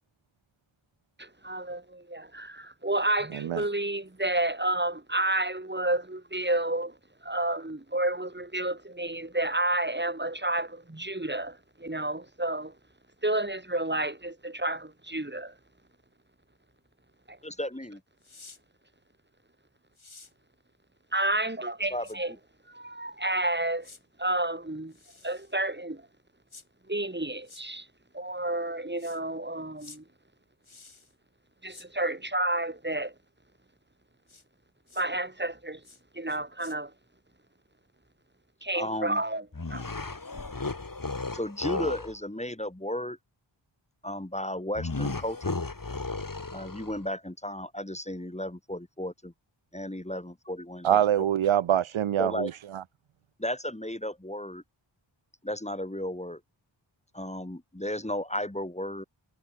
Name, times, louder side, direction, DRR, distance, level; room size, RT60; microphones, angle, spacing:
voice 1, 1.2-7.0 7.2-12.7 13.2-15.5 17.3-17.4 21.1-22.3 22.7-23.9 24.2-24.9 25.2-26.1 26.9-27.9 28.1-30.0 31.6-33.1 34.9-35.8 36.1-36.9 38.6-39.8, right 1 dB, 20° right, 3.1 m, -30 dB
voice 2, 17.4-18.0 21.9-22.1 38.7-39.2 41.3-43.2 44.0-45.5 46.5-49.3 49.7-51.3 52.2-52.5 53.4-54.6 55.4-56.4 57.1-59.0, left 1 dB, 15° left, 2.2 m, -34 dB
sound 1, 18.2-18.6 19.9-20.3 22.0-22.2 23.8-24.0 24.9-25.5 26.5-26.7 27.4-27.6 29.0-29.2 29.8-30.0 30.6-31.1 31.7-31.9 34.3-34.4 34.9-35.1 35.8-36.0 36.3-36.8, left 4 dB, 80° left, 6.6 m, -51 dB
sound 2, 39.5-42.2 44.8-47.1, left 3 dB, 45° left, 2.6 m, -34 dB
voice 3, 50.8-52.8, right 10 dB, 80° right, 0.6 m, -25 dB
wide cardioid pair, 55°, 47 cm